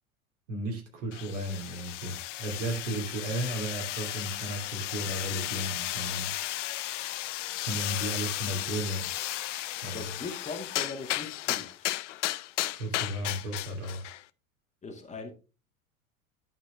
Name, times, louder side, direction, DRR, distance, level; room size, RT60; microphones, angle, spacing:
voice 1, 0.5-6.3 7.6-9.1 9.8-10.1 12.8-14.1, right 1 dB, 60° right, 2.9 m, -34 dB
sound 1, 1.1-14.2, left 15 dB, 60° left, 0.5 m, -34 dB
voice 2, 9.9-11.7 14.8-15.3, left 3 dB, 15° left, 1.8 m, -40 dB
11.0 x 5.1 x 3.3 m
figure-of-eight pair, 85°, 41 cm